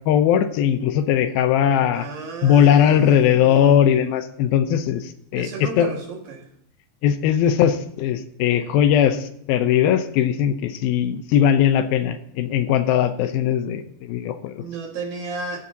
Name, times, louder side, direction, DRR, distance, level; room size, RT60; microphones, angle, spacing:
voice 1, 0.1-2.1 2.4-5.0 5.3-5.9 7.0-14.6, left 9 dB, 85° left, 9 dB, 2.7 m, -19 dB
voice 2, 1.9-3.9 5.3-6.4 14.6-15.6, right 4 dB, 70° right, 1 dB, 3.6 m, -33 dB
14.5 x 13.5 x 2.8 m, 0.70 s
omnidirectional pair, 4.2 m